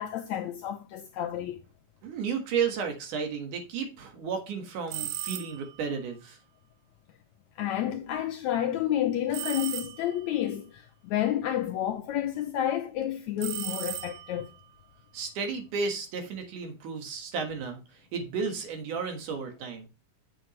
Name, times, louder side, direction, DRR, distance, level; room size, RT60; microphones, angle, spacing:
voice 1, 0.0-1.6 7.6-14.5, left 11 dB, 75° left, 1.8 m, -30 dB
voice 2, 2.0-6.4 15.1-19.9, right 5 dB, 70° right, 3.1 m, -33 dB
sound 1, 4.9-5.8 9.3-10.3 13.4-14.5, right 14 dB, 85° right, 2.5 m, -36 dB
7.8 x 7.8 x 3.1 m
omnidirectional pair, 3.9 m